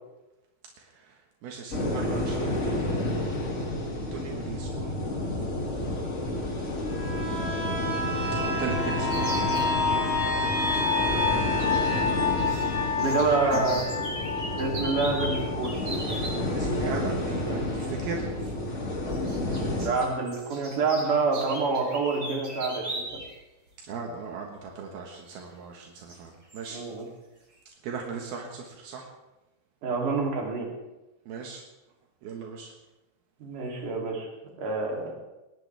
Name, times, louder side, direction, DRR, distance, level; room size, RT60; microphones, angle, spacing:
voice 1, 0.8-2.8 4.0-5.0 8.4-9.5 9.8-11.0 13.0-13.9 16.3-18.5 23.8-26.8 27.8-29.1 31.3-31.6 32.2-32.7, right 5 dB, 80° right, 1 dB, 3.4 m, -38 dB
sound 1, 1.7-19.9, left 1 dB, 20° left, 2.2 m, -30 dB
sound 2, 6.9-16.4 16.8-16.9, left 4 dB, 60° left, 7.2 m, -29 dB
sound 3, 9.1-9.7 11.6-12.7 12.9-16.4 17.8-17.9 19.1-23.4 23.7-23.8 25.3-25.4 26.0-26.2 26.5-26.7, right 1 dB, 40° right, 6.9 m, -39 dB
voice 2, 13.0-13.8 14.6-15.7 19.7-23.2 26.7-27.1 29.8-30.7 33.4-34.3 34.6-35.1, right 4 dB, 55° right, 0 dB, 4.4 m, -27 dB
20.5 x 20.0 x 3.5 m, 1.0 s
omnidirectional pair, 4.3 m